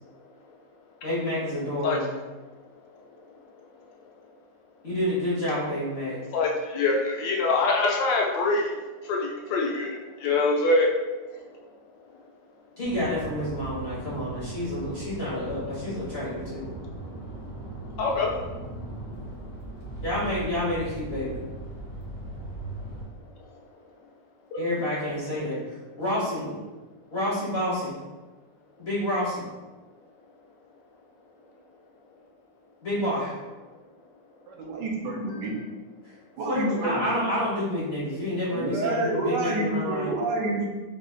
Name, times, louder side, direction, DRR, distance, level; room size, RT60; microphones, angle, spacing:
voice 1, 1.0-2.2 4.8-6.2 12.8-16.7 20.0-21.5 24.6-26.6 27.1-28.1 28.8-29.4 32.8-33.3 36.5-40.1, left 1 dB, 50° left, -7 dB, 0.8 m, -29 dB
voice 2, 6.3-8.7 9.1-10.9 18.0-18.3 24.5-24.6 35.3-35.4, left 3 dB, 80° left, 0 dB, 1.3 m, -24 dB
sound 1, 12.8-23.0, right 2 dB, 30° right, 0.5 m, -39 dB
voice 3, 34.5-35.5 36.4-37.1 38.5-40.7, right 2 dB, 75° right, -1 dB, 1.3 m, -28 dB
3.3 x 2.4 x 3.7 m, 1.2 s
omnidirectional pair, 2.0 m